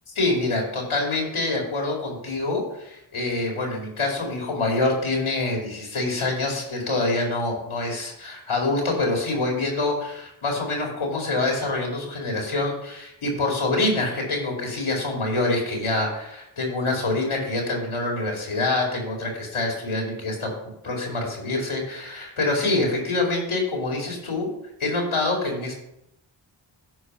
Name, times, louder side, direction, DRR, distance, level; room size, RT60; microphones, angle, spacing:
voice 1, 0.1-20.5 20.8-24.5 24.8-25.7, left 2 dB, 85° left, 0 dB, 2.5 m, -26 dB
10.0 x 4.7 x 5.5 m, 0.82 s
wide cardioid pair, 60°, 48 cm